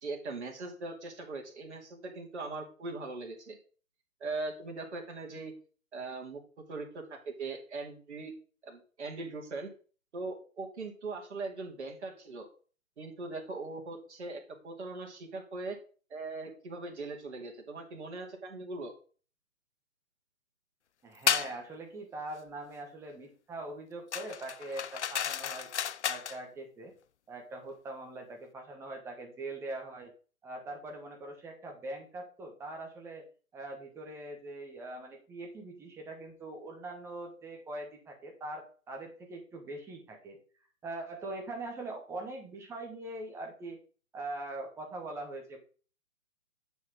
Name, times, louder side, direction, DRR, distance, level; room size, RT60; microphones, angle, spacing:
voice 1, 0.0-3.6 4.2-5.5 5.9-6.4 6.7-8.3 8.6-9.7 10.1-12.5 13.0-15.8 16.1-18.9, right 3 dB, 55° right, 0 dB, 2.4 m, -40 dB
voice 2, 21.0-25.7 26.0-26.9 27.3-30.1 30.4-33.2 33.5-40.4 40.8-43.8 44.1-45.6, right 2 dB, 5° right, 3 dB, 1.1 m, -42 dB
sound 1, 21.3-21.5 24.1-26.4, left 8 dB, 55° left, 0.6 m, -32 dB
9.6 x 6.0 x 3.8 m, 0.39 s
figure-of-eight pair, 135°, 41 cm